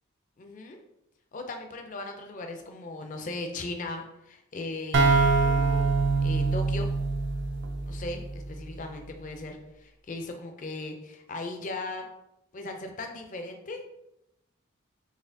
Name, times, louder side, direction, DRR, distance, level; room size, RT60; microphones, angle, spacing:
voice 1, 0.4-0.8 1.3-5.9 6.2-6.9 7.9-12.1 12.5-13.8, left 2 dB, 35° left, 4 dB, 0.4 m, -38 dB
sound 1, 4.9-8.6, right 3 dB, 55° right, 0.4 m, -24 dB
4.0 x 3.1 x 2.6 m, 0.86 s
head